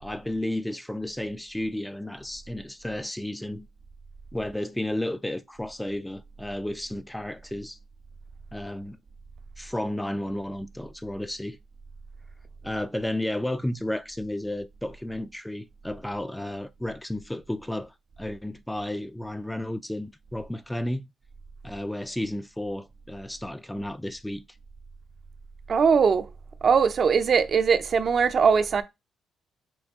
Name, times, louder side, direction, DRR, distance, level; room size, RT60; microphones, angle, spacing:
voice 1, 0.0-3.7 4.3-7.8 8.5-9.0 9.6-11.6 12.6-21.1 21.6-24.4, left 1 dB, 5° left, 0.3 m, -32 dB
voice 2, 25.7-26.3 26.6-28.8, right 6 dB, 50° right, 0.5 m, -21 dB
6.0 x 2.2 x 3.6 m
cardioid pair, 90°, 0 cm